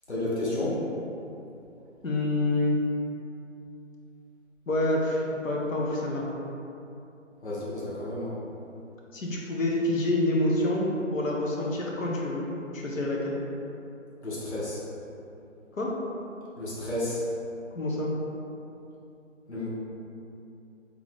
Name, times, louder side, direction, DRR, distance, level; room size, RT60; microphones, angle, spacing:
voice 1, 0.1-0.8 7.4-8.3 14.2-14.8 16.6-17.2 19.5-19.7, left 1 dB, 55° left, -8 dB, 1.3 m, -31 dB
voice 2, 2.0-2.8 4.7-6.3 9.1-12.5 12.7-13.4 15.7-15.9 17.7-18.1, left 1 dB, 85° left, -3 dB, 1.0 m, -27 dB
3.8 x 3.0 x 3.6 m, 2.8 s
figure-of-eight pair, 175°, 39 cm